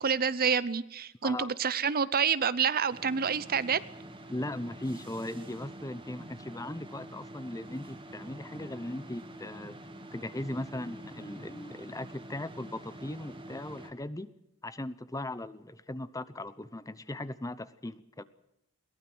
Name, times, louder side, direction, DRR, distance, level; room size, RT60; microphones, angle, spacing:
voice 1, 0.0-3.8, right 6 dB, 40° right, 17 dB, 0.7 m, -28 dB
voice 2, 1.2-1.5 4.3-14.3 14.6-18.2, left 1 dB, 15° left, 15 dB, 0.8 m, -38 dB
sound 1, 2.9-13.9, right 1 dB, 20° right, 2.6 m, -46 dB
22.0 x 19.0 x 6.2 m, 0.81 s
head